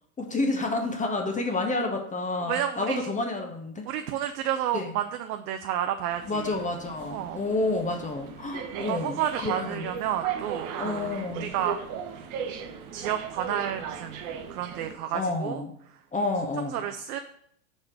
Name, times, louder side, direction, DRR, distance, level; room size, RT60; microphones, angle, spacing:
voice 1, 0.2-3.9 4.7-4.9 6.3-9.9 10.8-11.5 15.1-15.7 16.1-16.8, left 2 dB, 15° left, 3 dB, 0.9 m, -29 dB
voice 2, 2.4-3.1 3.9-6.5 7.1-7.4 8.7-11.8 12.9-15.6 16.7-17.2, right 10 dB, 80° right, 7 dB, 0.6 m, -31 dB
sound 1, 6.1-14.9, right 7 dB, 40° right, 0.9 m, -37 dB
5.1 x 4.1 x 5.8 m, 0.69 s
hypercardioid pair, 105°, 45 cm